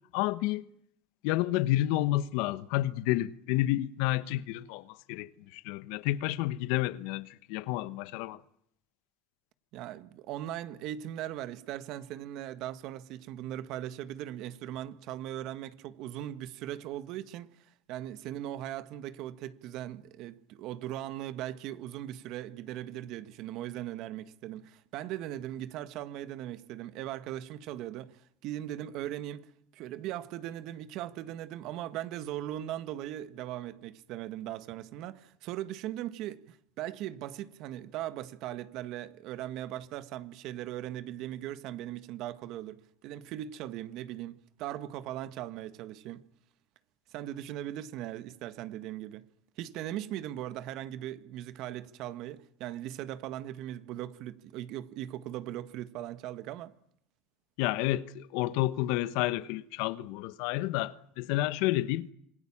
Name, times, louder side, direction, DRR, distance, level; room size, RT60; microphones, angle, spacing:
voice 1, 0.1-0.7 1.2-8.4 57.6-62.1, left 16 dB, 75° left, 1.2 m, -30 dB
voice 2, 9.7-46.2 47.1-49.2 49.6-56.7, right 12 dB, 60° right, 1.7 m, -39 dB
27.0 x 21.0 x 7.4 m
supercardioid pair, 115°, 0 cm